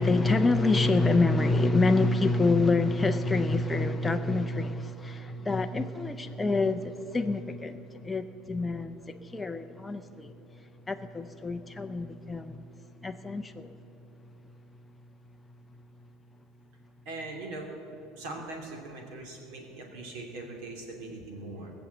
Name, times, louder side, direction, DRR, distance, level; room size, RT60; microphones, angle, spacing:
voice 1, 0.0-10.3 10.9-12.7 13.0-13.7, left 2 dB, 10° left, 0.4 m, -27 dB
voice 2, 17.0-17.7 18.2-21.7, right 2 dB, 60° right, 2.7 m, -41 dB
19.0 x 7.1 x 8.0 m
cardioid pair, 175°, 0 cm